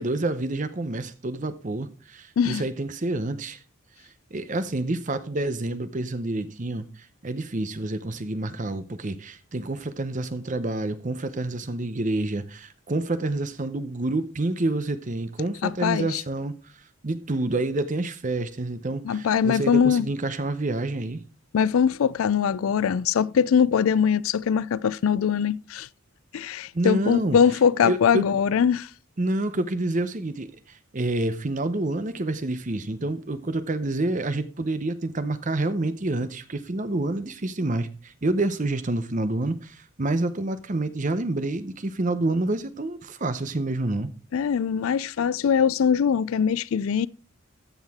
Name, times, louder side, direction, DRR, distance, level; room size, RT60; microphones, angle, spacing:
voice 1, 0.0-3.6 4.3-16.5 17.0-21.2 26.7-27.4 27.8-28.3 29.2-44.1, right 2 dB, 35° right, 0.7 m, -28 dB
voice 2, 15.6-16.2 19.0-20.1 21.5-25.9 26.3-28.9 44.3-47.1, left 7 dB, 70° left, 0.4 m, -22 dB
14.0 x 6.4 x 3.6 m
head